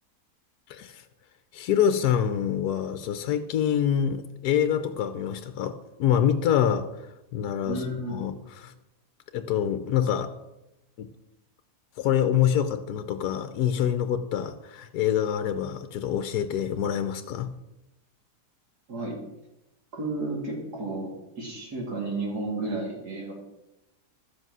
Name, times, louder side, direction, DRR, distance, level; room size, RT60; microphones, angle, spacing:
voice 1, 0.7-1.0 1.5-6.9 7.3-7.8 8.1-8.7 9.3-10.3 11.0-11.1 12.0-17.5, left 9 dB, 70° left, 10 dB, 1.2 m, -26 dB
voice 2, 7.7-8.2 18.9-19.1 19.9-21.1 21.4-23.3, right 2 dB, 65° right, -1 dB, 3.3 m, -32 dB
12.5 x 7.9 x 6.1 m, 0.93 s
omnidirectional pair, 1.8 m